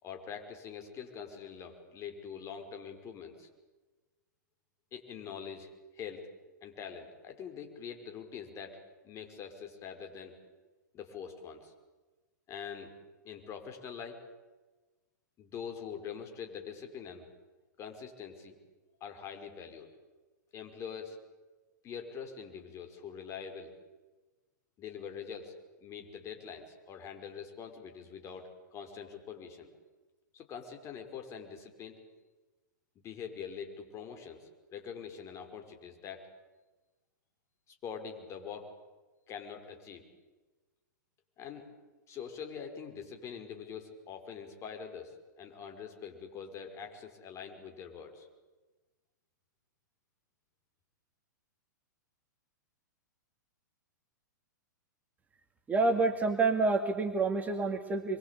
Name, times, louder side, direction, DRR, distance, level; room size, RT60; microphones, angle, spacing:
voice 1, 0.0-3.5 4.9-5.7 5.9-6.3 6.6-10.3 10.9-11.7 12.5-12.9 13.2-14.2 15.4-17.3 17.8-18.6 19.0-19.9 20.5-21.2 21.8-23.7 24.8-25.5 25.8-29.7 30.3-32.0 33.0-36.2 37.7-38.7 39.3-40.0 41.4-41.7 42.1-48.3, left 7 dB, 30° left, 6 dB, 5.6 m, -44 dB
voice 2, 55.7-58.2, right 3 dB, 15° right, 4 dB, 2.1 m, -28 dB
27.5 x 23.0 x 8.6 m, 1.2 s
figure-of-eight pair, 105°, 10 cm